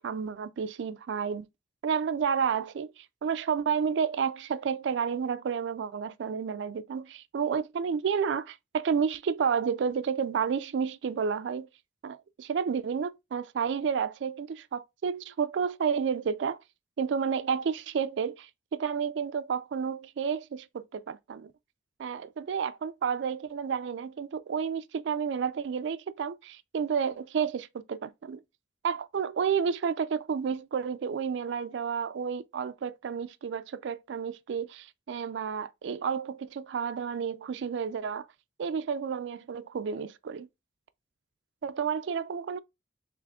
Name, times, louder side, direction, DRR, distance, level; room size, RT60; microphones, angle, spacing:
voice 1, 0.0-1.5 1.8-11.7 12.0-16.6 17.0-21.5 22.0-28.4 28.8-38.3 38.6-40.5 41.6-42.6, right 6 dB, 70° right, 0.3 m, -31 dB
3.4 x 3.4 x 3.5 m
head